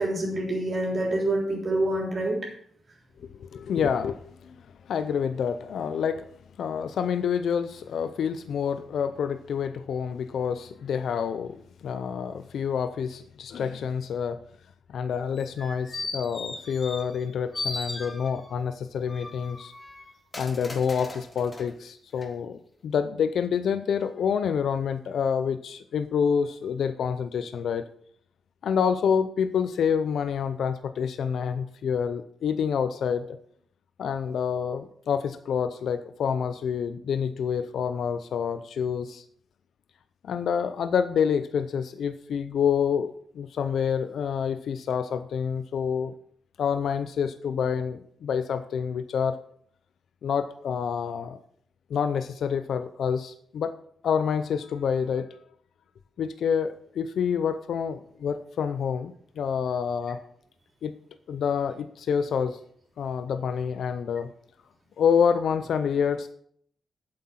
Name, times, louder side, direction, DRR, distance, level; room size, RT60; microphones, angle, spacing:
voice 1, 0.0-2.4, right 1 dB, 45° right, -1 dB, 3.5 m, -26 dB
voice 2, 3.2-4.5 4.9-6.3 6.6-14.4 14.9-19.7 20.4-27.8 28.6-33.3 34.0-39.2 40.2-46.1 46.6-49.4 50.2-51.4 51.9-53.7 54.0-55.3 56.2-60.2 60.8-60.9 61.3-62.6 63.0-64.3 65.0-66.3, left 7 dB, 80° left, 10 dB, 0.5 m, -27 dB
sound 1, 15.4-17.3 17.5-18.6 19.1-21.7 22.2-22.3, left 2 dB, 25° left, 1.6 m, -37 dB
8.6 x 7.7 x 5.7 m, 0.63 s
cardioid pair, 110°, 0 cm